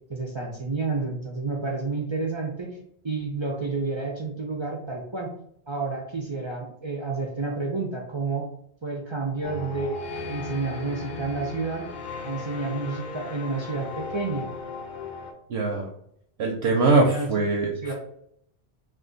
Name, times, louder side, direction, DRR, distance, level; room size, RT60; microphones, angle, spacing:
voice 1, 0.1-2.7 3.0-5.3 5.7-8.5 8.8-10.0 10.3-11.9 12.2-14.5 17.0-17.3 17.8-17.9, right 4 dB, 45° right, 0 dB, 0.4 m, -30 dB
sound 1, 9.4-15.3, left 4 dB, 55° left, 0.6 m, -36 dB
voice 2, 15.5-15.9 16.4-17.9, right 3 dB, 85° right, 0 dB, 0.9 m, -22 dB
2.5 x 2.4 x 3.7 m, 0.70 s
omnidirectional pair, 1.1 m